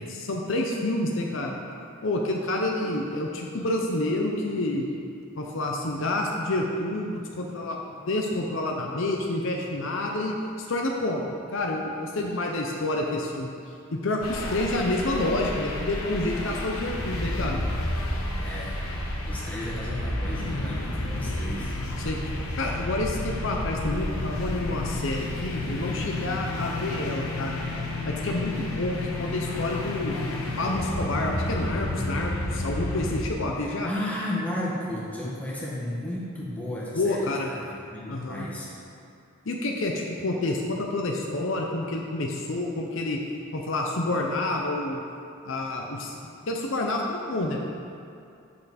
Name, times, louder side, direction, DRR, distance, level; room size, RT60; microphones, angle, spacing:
voice 1, 0.1-1.6 2.0-4.9 5.4-7.8 8.1-10.3 10.7-11.2 11.5-13.5 13.9-17.6 20.5-20.8 22.0-22.2 22.6-27.6 28.1-30.2 30.6-33.9 36.9-37.5 38.1-38.5 39.5-43.2 43.5-45.0 45.5-46.1 46.5-47.6, left 2 dB, 65° left, 0 dB, 0.7 m, -28 dB
sound 1, 14.2-33.3, left 1 dB, 90° left, 1.0 m, -31 dB
voice 2, 18.4-19.0 19.2-21.7 33.6-38.7, left 1 dB, 5° left, -7 dB, 1.5 m, -34 dB
7.5 x 6.6 x 4.2 m, 2.6 s
head